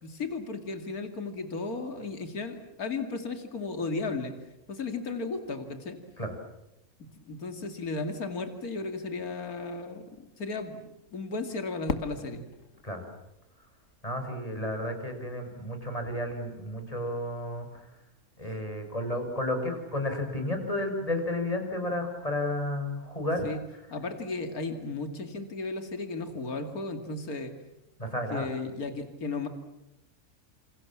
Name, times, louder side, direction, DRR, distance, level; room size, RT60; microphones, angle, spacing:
voice 1, 0.0-4.3 4.7-6.0 7.2-12.4 23.4-23.6 23.9-27.5 28.3-29.5, left 3 dB, 75° left, 7 dB, 2.9 m, -35 dB
Fireworks, 11.9-14.7, left 5 dB, 60° left, 1.7 m, -39 dB
voice 2, 14.0-17.9 18.4-23.5 28.0-28.5, left 1 dB, 25° left, 4 dB, 6.2 m, -32 dB
28.5 x 28.5 x 7.4 m, 0.90 s
omnidirectional pair, 1.5 m